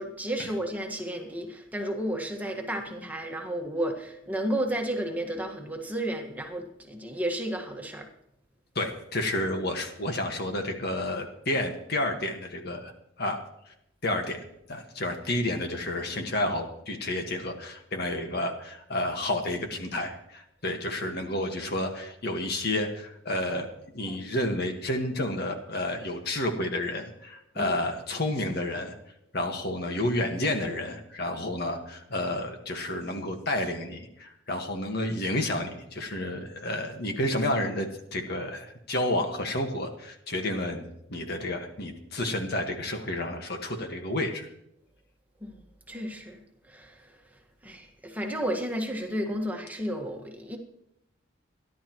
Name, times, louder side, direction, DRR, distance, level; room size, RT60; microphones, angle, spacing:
voice 1, 0.0-8.1 24.0-24.2 27.6-27.8 45.4-46.4 46.7-47.2 47.6-50.6, right 1 dB, 10° right, 2 dB, 1.6 m, -32 dB
voice 2, 8.8-12.9 13.2-13.4 14.0-23.7 23.9-28.9 29.3-40.8 41.1-44.5, left 1 dB, 55° left, 4 dB, 1.7 m, -30 dB
28.0 x 11.5 x 3.1 m, 0.78 s
head